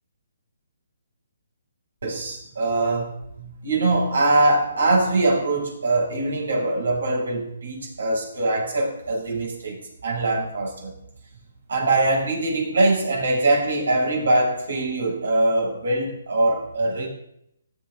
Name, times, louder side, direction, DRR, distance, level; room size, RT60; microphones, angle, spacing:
voice 1, 2.0-3.1 3.4-10.9 11.7-17.1, right 2 dB, 75° right, 0 dB, 7.6 m, -22 dB
18.5 x 15.0 x 4.0 m, 0.74 s
hypercardioid pair, 150°, 0 cm